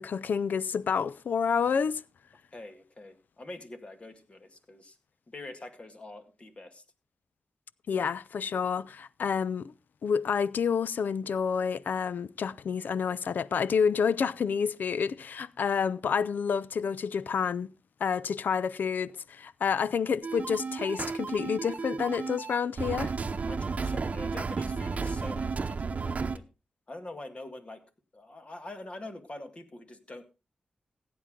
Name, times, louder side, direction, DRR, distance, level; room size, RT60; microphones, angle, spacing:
voice 1, 0.0-2.0 7.9-9.7 10.0-17.7 18.0-23.1, left 6 dB, 80° left, 0.5 m, -29 dB
voice 2, 2.5-5.0 5.3-6.8 23.4-26.5 26.9-27.8 28.1-30.2, left 2 dB, 40° left, 2.1 m, -45 dB
sound 1, 20.2-26.4, right 4 dB, 50° right, 0.9 m, -33 dB
16.5 x 8.7 x 3.7 m
cardioid pair, 75°, 3 cm